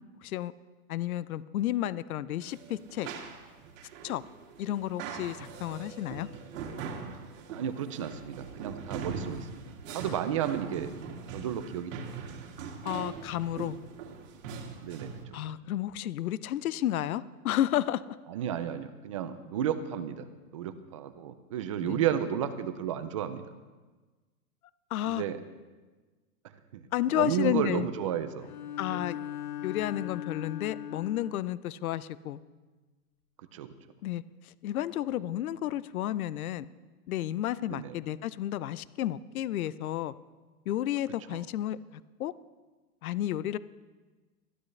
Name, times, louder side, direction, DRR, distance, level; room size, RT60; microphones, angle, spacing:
voice 1, 0.2-0.5 0.9-3.1 4.0-4.2 4.6-6.3 10.1-10.2 12.8-13.8 15.3-18.0 21.8-22.0 24.9-25.2 26.9-27.9 28.8-29.2 29.6-32.4 34.0-36.7 37.1-40.1 40.7-42.3 43.0-43.6, left 13 dB, 65° left, 18 dB, 0.7 m, -32 dB
sound 1, 2.4-15.2, right 5 dB, 55° right, 2.3 m, -41 dB
voice 2, 7.5-9.5 9.9-10.9 11.3-12.1 14.8-15.4 18.3-20.2 20.5-23.4 25.1-25.4 26.7-26.8 27.2-28.5 28.9-29.1 33.5-33.7 37.7-38.0 41.3-41.5, right 9 dB, 25° right, 11 dB, 0.4 m, -32 dB
Bowed string instrument, 28.4-31.5, left 11 dB, 35° left, 0.4 m, -39 dB
20.5 x 13.0 x 3.3 m, 1.3 s
hypercardioid pair, 155°, 46 cm